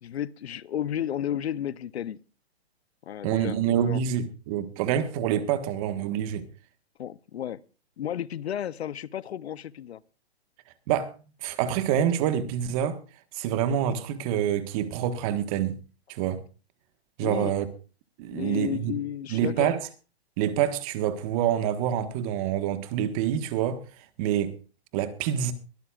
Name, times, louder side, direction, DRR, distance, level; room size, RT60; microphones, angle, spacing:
voice 1, 0.0-2.2 3.0-4.0 7.0-7.6 8.0-10.0 17.2-17.5 18.3-19.7, left 10 dB, 75° left, 0.8 m, -32 dB
voice 2, 3.2-6.4 10.9-11.1 11.4-13.0 13.3-15.8 16.1-16.4 17.2-17.7 18.2-18.9 19.3-19.8 20.4-23.8 24.2-24.5 24.9-25.5, right 10 dB, 35° right, 1.5 m, -26 dB
22.5 x 12.5 x 2.5 m
hypercardioid pair, 145°, 32 cm